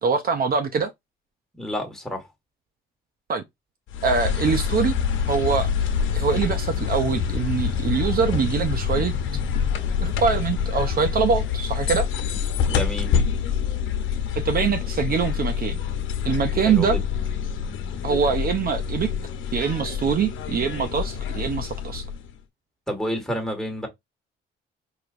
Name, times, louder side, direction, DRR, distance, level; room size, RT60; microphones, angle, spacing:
voice 1, 0.0-0.9 3.3-3.4 4.0-4.9 5.3-5.7 6.1-9.1 10.0-12.1 14.4-15.8 16.2-17.0 18.0-19.1 19.5-22.1, right 6 dB, 50° right, 0.7 m, -23 dB
voice 2, 1.6-2.3 12.3-13.1 16.6-17.0 22.9-23.9, equal, ahead, 1.7 m, -30 dB
sound 1, 3.9-22.3, left 7 dB, 75° left, 1.0 m, -26 dB
4.9 x 2.8 x 2.6 m
cardioid pair, 90°, 20 cm